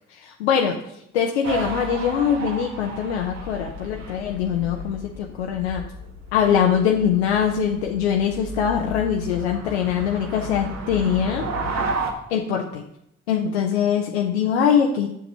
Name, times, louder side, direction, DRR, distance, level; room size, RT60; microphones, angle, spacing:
voice 1, 0.1-0.8 1.1-5.8 6.3-11.5 12.3-12.8 13.3-15.1, left 8 dB, 85° left, 2 dB, 0.7 m, -22 dB
sound 1, 1.4-12.1, right 1 dB, 55° right, 1.7 m, -33 dB
7.4 x 6.0 x 6.5 m, 0.78 s
figure-of-eight pair, 40°, 32 cm